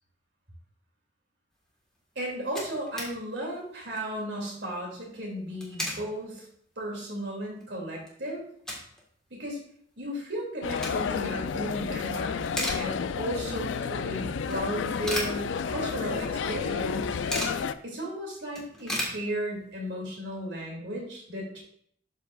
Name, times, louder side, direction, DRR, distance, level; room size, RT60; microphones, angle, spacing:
sound 1, 2.0-2.1 2.2-3.1 3.5-3.6 3.9-4.2 5.4-6.1 6.6-6.7 7.2-7.3 7.6-9.0 9.3-9.4 10.4-11.3 11.7-12.0 12.3-13.3 13.7-13.8 14.5-16.0 16.3-16.4 16.6-17.7 18.1-18.2 18.4-19.8, left 1 dB, 5° left, 1.5 m, -35 dB
voice 1, 2.2-6.5 6.8-8.4 9.3-9.6 10.0-17.2 17.8-21.6, right 1 dB, 65° right, -2 dB, 2.5 m, -35 dB
sound 2, 10.6-17.7, left 6 dB, 85° left, 0.4 m, -31 dB
12.0 x 4.7 x 2.4 m, 0.63 s
head